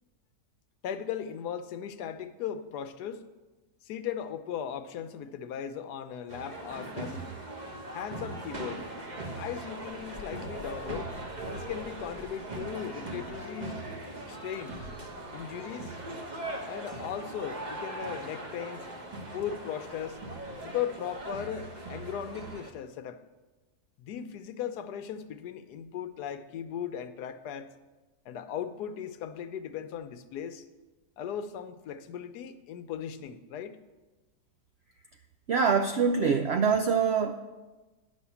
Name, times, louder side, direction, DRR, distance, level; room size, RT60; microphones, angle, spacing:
voice 1, 0.8-3.2 3.8-7.2 7.9-8.9 9.3-11.1 11.4-13.8 14.3-14.8 15.3-15.9 16.6-18.9 19.3-20.2 20.6-23.2 24.0-27.7 28.3-30.6 31.2-33.8, left 9 dB, 85° left, 1.2 m, -37 dB
sound 1, 6.3-22.7, right 2 dB, 30° right, 1.1 m, -40 dB
voice 2, 35.5-37.4, right 6 dB, 80° right, 0.5 m, -24 dB
10.0 x 6.3 x 7.0 m
omnidirectional pair, 1.7 m